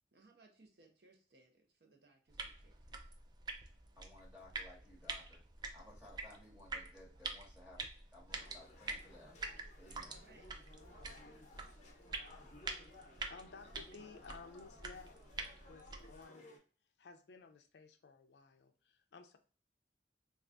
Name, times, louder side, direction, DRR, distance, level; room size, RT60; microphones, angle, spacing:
voice 1, 0.1-3.0 10.1-10.5, right 3 dB, 65° right, 3 dB, 0.7 m, -66 dB
sound 1, 2.3-16.2, right 3 dB, 25° right, 0.3 m, -47 dB
voice 2, 4.0-5.4 5.7-7.8 8.1-9.3 9.8-10.2, left 1 dB, 10° right, -4 dB, 1.3 m, -58 dB
sound 2, 8.3-16.6, left 2 dB, 40° left, 0.8 m, -59 dB
voice 3, 13.1-15.2 15.7-16.6 17.0-19.4, left 4 dB, 70° left, 7 dB, 0.4 m, -55 dB
3.4 x 2.3 x 2.5 m, 0.39 s
head